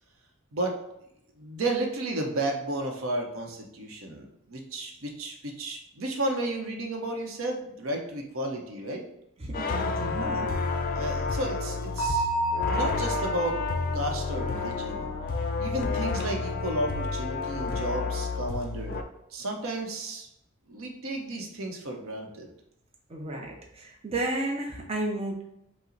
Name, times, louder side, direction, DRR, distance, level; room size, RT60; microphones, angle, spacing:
voice 1, 1.4-9.0 10.9-12.3 12.7-13.6 13.9-15.1 15.6-19.0 19.3-20.3 20.7-22.5, right 1 dB, 70° right, 3 dB, 0.7 m, -32 dB
voice 2, 9.4-10.5 23.1-25.4, right 2 dB, 30° right, 0 dB, 0.5 m, -32 dB
sound 1, 9.5-19.0, left 4 dB, 45° left, 0.4 m, -30 dB
Bell, 12.0-15.6, right 2 dB, 20° left, 1.3 m, -32 dB
5.5 x 2.0 x 3.9 m, 0.78 s
head